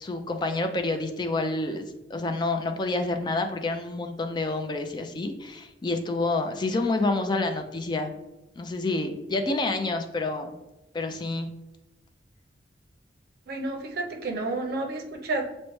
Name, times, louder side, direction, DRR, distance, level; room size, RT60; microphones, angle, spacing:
voice 1, 0.0-8.2 8.6-10.5 10.9-11.5, left 2 dB, 25° left, 5 dB, 0.3 m, -28 dB
voice 2, 13.5-15.4, right 2 dB, 55° right, 2 dB, 0.6 m, -30 dB
6.3 x 2.1 x 3.0 m, 0.99 s
head